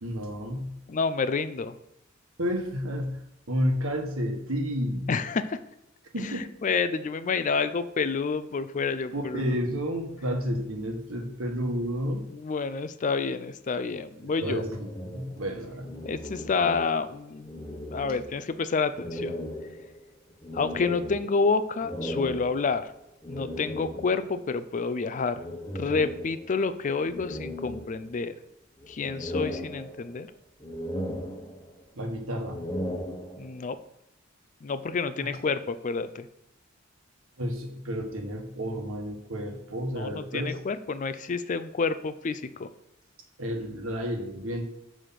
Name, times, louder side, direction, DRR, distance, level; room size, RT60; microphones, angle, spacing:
voice 1, 0.0-0.8 2.4-5.2 6.1-6.4 9.1-12.2 14.2-15.9 31.9-32.6 35.2-35.3 37.4-40.6 43.4-44.6, equal, 85° right, 3 dB, 1.4 m, -31 dB
voice 2, 0.9-1.7 5.1-5.6 6.2-9.5 12.3-14.6 16.0-17.5 17.8-19.4 20.5-22.9 23.3-25.4 25.8-28.3 28.9-30.3 33.4-33.8 34.6-36.3 39.9-42.7, left 4 dB, 40° left, 13 dB, 0.4 m, -29 dB
sound 1, 14.4-17.2 17.4-18.6 19.0-24.4 25.3-26.6 27.1-28.4 28.8-30.3 30.6-31.9 32.4-33.7, equal, 20° left, 1.0 m, -37 dB
6.3 x 5.1 x 5.6 m, 0.84 s
head